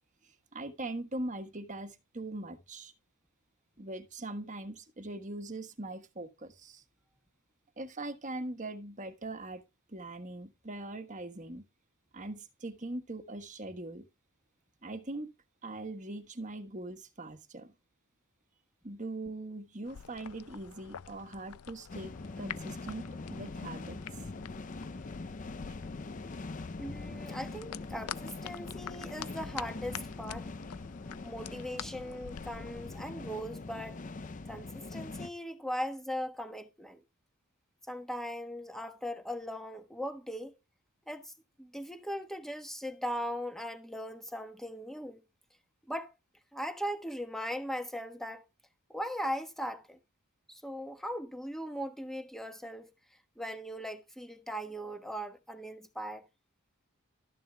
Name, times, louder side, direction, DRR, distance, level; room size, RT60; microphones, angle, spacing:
voice 1, 0.5-2.9 3.8-6.8 7.8-9.6 9.9-11.6 12.1-14.1 14.8-15.3 15.6-17.7 18.8-24.0, right 2 dB, 35° right, 1.3 m, -41 dB
sound 1, 19.8-33.0, left 9 dB, 85° left, 0.5 m, -47 dB
sound 2, 21.9-35.3, left 3 dB, 35° left, 0.5 m, -43 dB
voice 2, 26.8-30.5 31.2-34.0 34.5-37.0 37.9-40.6 41.1-41.3 41.6-45.2 45.9-46.1 46.5-48.5 48.9-50.0 50.5-56.3, equal, ahead, 1.2 m, -39 dB
13.0 x 10.5 x 2.3 m
head